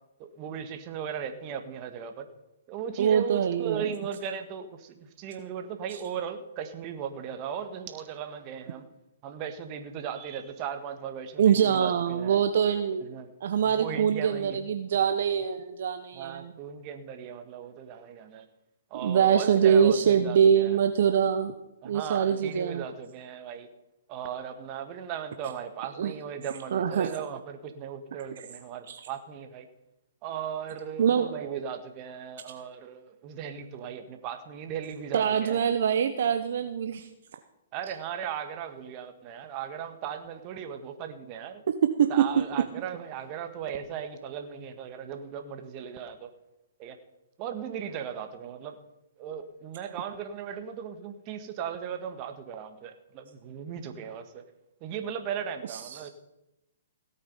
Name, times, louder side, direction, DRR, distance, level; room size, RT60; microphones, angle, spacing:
voice 1, 0.2-2.3 2.7-8.9 9.2-12.4 13.0-13.3 13.6-14.6 16.1-18.5 18.9-20.8 21.8-23.7 24.1-29.7 30.2-35.6 37.7-41.6 42.1-46.3 46.8-47.0 47.4-48.8 49.2-54.4 54.8-56.1, right 8 dB, 35° right, 8 dB, 1.6 m, -37 dB
voice 2, 3.0-3.8 11.4-13.1 13.4-16.5 19.0-21.5 21.8-22.8 26.0-26.1 26.7-27.1 28.9-29.0 31.0-31.3 35.1-37.1 42.0-42.1 55.7-56.0, right 8 dB, 60° right, 7 dB, 0.9 m, -24 dB
17.0 x 8.6 x 5.5 m, 0.93 s
hypercardioid pair, 125°, 0 cm